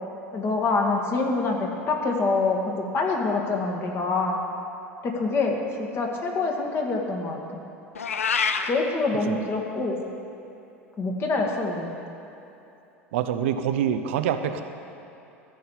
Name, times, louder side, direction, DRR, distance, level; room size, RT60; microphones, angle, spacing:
voice 1, 0.3-4.4 5.0-7.4 8.7-10.0 11.0-11.9, left 3 dB, 35° left, 1 dB, 2.0 m, -25 dB
Meow, 7.9-8.7, left 6 dB, 80° left, 0.5 m, -25 dB
voice 2, 13.1-14.6, right 9 dB, 60° right, 8 dB, 0.6 m, -25 dB
14.0 x 5.5 x 8.5 m, 2.9 s
figure-of-eight pair, 75°, 7 cm